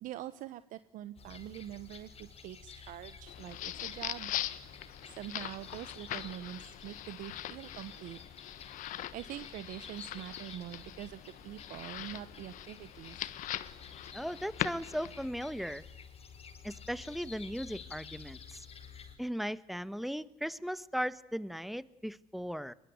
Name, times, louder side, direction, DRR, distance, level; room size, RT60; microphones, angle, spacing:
voice 1, 0.0-4.3 5.1-8.2 9.1-13.2, right 13 dB, 75° right, 14 dB, 1.1 m, -44 dB
sound 1, 1.2-19.2, left 5 dB, 45° left, 5.3 m, -51 dB
sound 2, 3.3-15.3, left 13 dB, 75° left, 1.4 m, -42 dB
voice 2, 14.1-15.8 16.6-18.6 19.2-22.7, equal, ahead, 17 dB, 1.3 m, -37 dB
23.5 x 22.5 x 9.6 m, 0.84 s
supercardioid pair, 85°, 14 cm